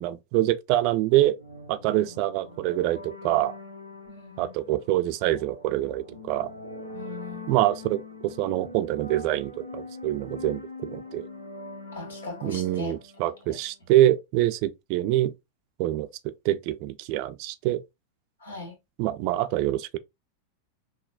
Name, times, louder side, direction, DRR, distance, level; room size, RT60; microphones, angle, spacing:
voice 1, 0.0-1.3 1.7-3.5 4.4-6.5 7.5-11.3 12.4-15.3 15.8-16.1 16.4-17.8 19.0-20.0, right 14 dB, 45° right, 0.4 m, -25 dB
sound 1, 1.4-13.9, left 2 dB, 85° left, 1.0 m, -43 dB
voice 2, 4.1-4.6 6.9-7.5 11.9-13.0 13.5-13.6 18.4-18.7, left 2 dB, 65° left, 1.8 m, -39 dB
5.7 x 2.2 x 2.4 m
figure-of-eight pair, 90°, 0 cm